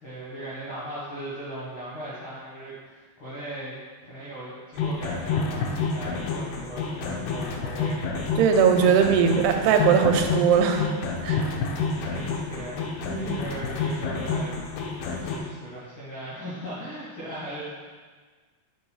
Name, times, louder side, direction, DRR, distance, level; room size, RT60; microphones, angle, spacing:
voice 1, 0.0-3.8 4.0-8.0 11.9-17.7, right 1 dB, 65° left, -10 dB, 1.2 m, -38 dB
sound 1, 4.8-15.4, left 4 dB, 80° left, 2.6 m, -29 dB
voice 2, 8.4-11.4 13.1-13.3, right 6 dB, 85° right, 4 dB, 2.6 m, -20 dB
6.8 x 3.7 x 4.6 m, 1.5 s
omnidirectional pair, 4.5 m